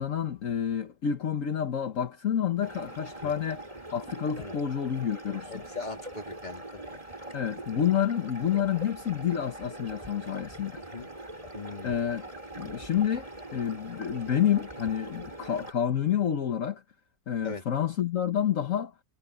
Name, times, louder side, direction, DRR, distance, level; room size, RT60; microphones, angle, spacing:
voice 1, 0.0-5.6 7.3-10.8 11.8-12.3 12.6-16.8 17.3-18.9, left 9 dB, 55° left, 1.5 m, -29 dB
sound 1, 2.6-15.7, right 1 dB, 20° right, 4.5 m, -42 dB
voice 2, 5.5-6.8 10.9-11.1 11.5-12.0 17.4-17.6, left 3 dB, 25° left, 2.7 m, -40 dB
omnidirectional pair, 1.7 m